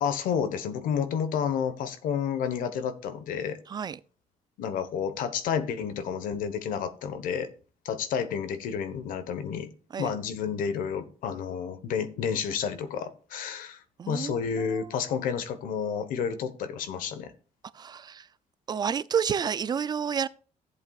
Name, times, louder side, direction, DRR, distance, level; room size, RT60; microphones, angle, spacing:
voice 1, 0.0-3.6 4.6-7.5 7.8-9.7 10.0-17.3, left 7 dB, 90° left, 1.2 m, -30 dB
voice 2, 3.7-4.0 9.9-10.1 14.0-14.9 17.7-18.3 18.7-20.3, right 7 dB, 30° right, 0.3 m, -30 dB
14.5 x 8.1 x 2.4 m
cardioid pair, 145°, 14 cm